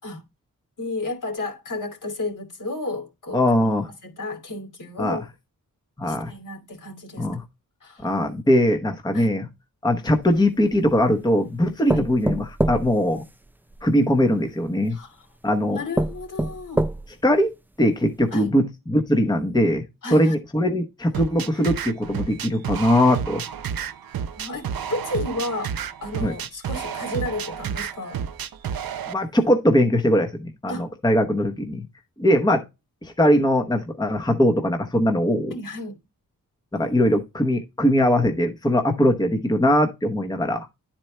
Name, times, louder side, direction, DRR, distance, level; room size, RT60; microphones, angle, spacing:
voice 1, 0.8-3.7 4.0-5.2 6.0-7.3 7.8-8.1 9.1-9.3 11.9-12.0 14.9-15.3 15.7-16.9 18.3-18.5 20.0-20.4 24.3-25.7 26.0-28.2 30.7-30.9 35.5-35.9, left 2 dB, 65° left, 2.5 m, -32 dB
voice 2, 3.3-3.9 5.0-5.2 6.0-6.3 7.2-7.4 8.0-9.5 9.8-13.2 13.8-15.0 15.4-15.8 17.2-17.5 17.8-19.8 20.1-23.4 26.2-26.4 29.1-31.8 32.2-32.6 33.0-35.5 36.7-40.7, equal, 10° left, 0.9 m, -21 dB
sound 1, 10.2-11.1 11.9-13.9 14.8-14.9 15.5-15.6 16.0-17.3 17.8-17.9 18.2-18.3, right 1 dB, 5° right, 0.3 m, -26 dB
sound 2, 21.1-29.1, right 8 dB, 85° right, 0.7 m, -31 dB
11.0 x 4.4 x 3.2 m
wide cardioid pair, 140°, 34 cm